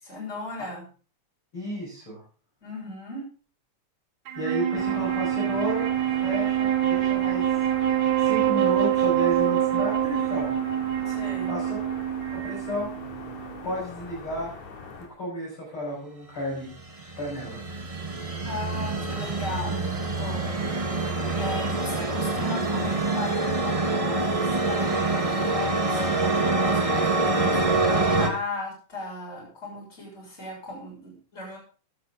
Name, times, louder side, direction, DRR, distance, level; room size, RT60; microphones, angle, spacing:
voice 1, 0.0-0.8 2.6-3.2 11.0-11.5 18.4-20.5 21.3-31.6, left 2 dB, 20° left, -2 dB, 6.9 m, -36 dB
voice 2, 1.5-2.2 4.4-7.4 8.2-10.6 11.5-11.8 12.3-12.9 13.6-14.5 15.2-16.7 17.2-17.6, equal, 45° left, -3 dB, 6.3 m, -32 dB
Wind instrument woodwind instrument, 4.3-13.8, right 12 dB, 80° right, 2.7 m, -25 dB
sound 1, 4.7-15.1, left 5 dB, 80° left, 3.7 m, -41 dB
sound 2, 16.7-28.3, right 3 dB, 30° right, 0.5 m, -26 dB
14.0 x 11.5 x 3.6 m, 0.36 s
omnidirectional pair, 3.3 m